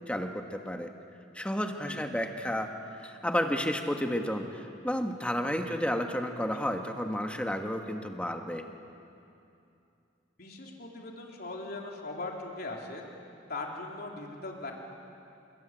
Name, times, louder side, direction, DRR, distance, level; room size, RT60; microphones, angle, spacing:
voice 1, 0.1-0.9 1.3-2.7 3.0-8.6, equal, 5° left, 4 dB, 1.6 m, -31 dB
voice 2, 10.4-13.0 13.5-14.7, left 2 dB, 55° left, -1 dB, 3.7 m, -39 dB
27.5 x 23.0 x 9.2 m, 2.7 s
head